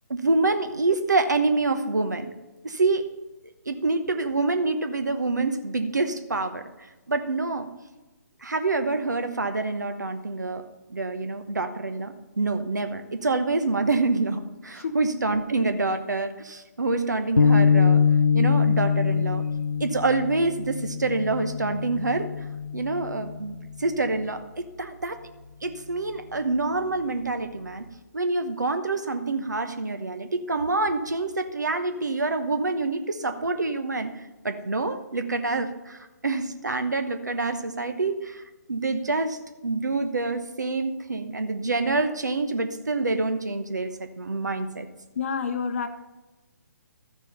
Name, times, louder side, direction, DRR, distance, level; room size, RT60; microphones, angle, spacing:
voice 1, 0.1-2.3 2.6-3.0 3.7-6.6 7.1-7.7 8.4-10.6 10.9-18.0 18.3-19.4 19.8-22.3 22.7-25.2 25.6-27.9 28.1-34.1 34.4-38.4 38.7-44.9, right 3 dB, 75° right, 8 dB, 1.0 m, -26 dB
sound 1, 17.4-23.8, left 6 dB, 85° left, 0.6 m, -23 dB
voice 2, 45.2-45.9, left 6 dB, 45° left, 6 dB, 0.8 m, -28 dB
13.0 x 7.3 x 5.5 m, 1.1 s
figure-of-eight pair, 135°, 10 cm